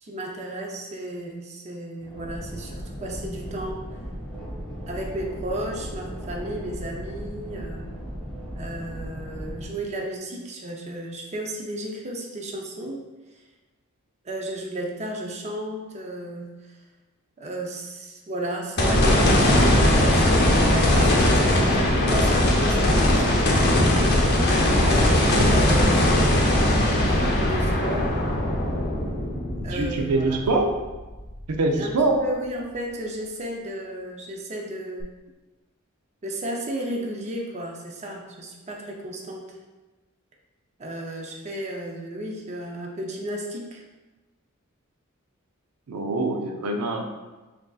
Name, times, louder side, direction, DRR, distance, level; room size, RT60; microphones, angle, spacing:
voice 1, 0.0-3.8 4.9-7.9 8.5-13.0 14.2-16.8 17.4-20.6 21.0-24.0 24.8-26.3 27.1-28.1 29.6-30.4 31.7-31.9 32.2-35.1 36.2-39.5 40.8-43.8, right 1 dB, 30° right, 0 dB, 0.5 m, -33 dB
sound 1, 2.0-9.7, equal, 5° left, 1.1 m, -36 dB
sound 2, 18.8-31.1 31.6-31.7 35.0-35.1, left 1 dB, 50° left, 0.7 m, -20 dB
voice 2, 29.7-30.7 31.5-32.2 45.9-47.0, right 2 dB, 85° right, 3 dB, 0.5 m, -24 dB
5.9 x 2.6 x 2.3 m, 1.2 s
head